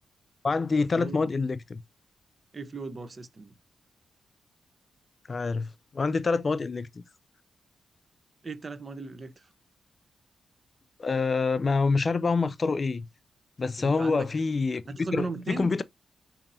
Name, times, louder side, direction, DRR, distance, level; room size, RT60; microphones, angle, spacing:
voice 1, 0.4-1.8 5.3-7.0 11.0-13.1 13.6-14.8 15.1-15.8, left 4 dB, 45° left, 0.4 m, -26 dB
voice 2, 0.9-1.3 2.5-3.5 8.4-9.5 13.8-14.3 14.9-15.7, right 3 dB, 45° right, 0.6 m, -37 dB
5.2 x 2.7 x 2.5 m
supercardioid pair, 50°, 0 cm